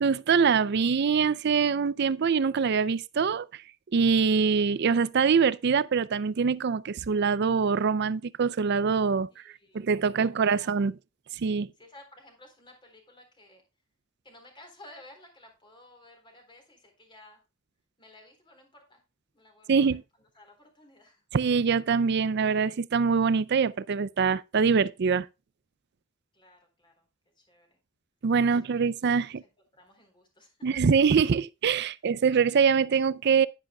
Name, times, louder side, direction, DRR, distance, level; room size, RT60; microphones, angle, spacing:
voice 1, 0.0-3.6 3.9-9.3 9.7-10.9 11.4-11.7 19.7-20.0 21.3-25.3 28.2-29.4 30.6-33.5, right 5 dB, 55° right, 0.4 m, -24 dB
voice 2, 9.3-10.7 11.8-13.6 14.2-17.4 18.0-19.0 19.3-21.2 26.3-27.1 27.4-27.8 28.4-28.9 29.3-30.7, left 1 dB, 25° left, 3.8 m, -55 dB
10.5 x 10.0 x 2.3 m
head